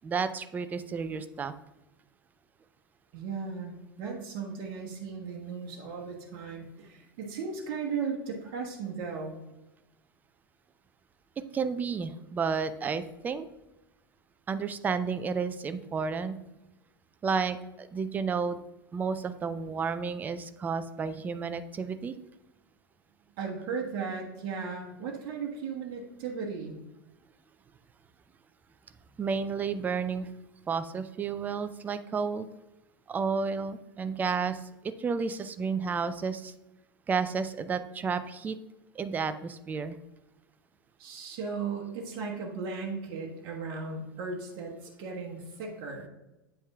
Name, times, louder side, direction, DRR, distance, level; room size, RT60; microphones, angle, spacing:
voice 1, 0.0-1.5 11.5-13.5 14.5-16.4 17.2-18.6 18.9-22.1 29.2-30.3 30.7-32.5 33.1-34.6 35.0-36.5 37.1-38.6 39.0-40.0, right 5 dB, 15° right, 12 dB, 0.3 m, -31 dB
voice 2, 3.1-9.4 23.4-26.8 41.0-46.1, right 5 dB, 45° right, 0 dB, 1.1 m, -36 dB
8.5 x 5.4 x 2.3 m, 0.97 s
figure-of-eight pair, 90°, 12 cm